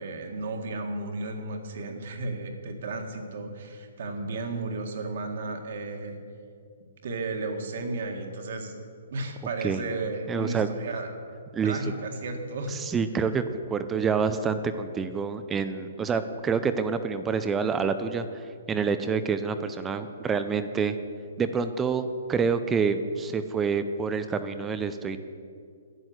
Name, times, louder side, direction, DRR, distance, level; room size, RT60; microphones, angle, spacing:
voice 1, 0.0-6.2 7.0-8.8 9.1-11.1 11.6-12.8, right 3 dB, 55° right, 4 dB, 1.8 m, -34 dB
voice 2, 10.3-10.7 11.5-11.8 12.7-13.4 13.7-21.0 21.4-25.2, right 5 dB, 10° right, 10 dB, 0.4 m, -27 dB
11.0 x 9.5 x 7.9 m, 2.3 s
hypercardioid pair, 165°, 0 cm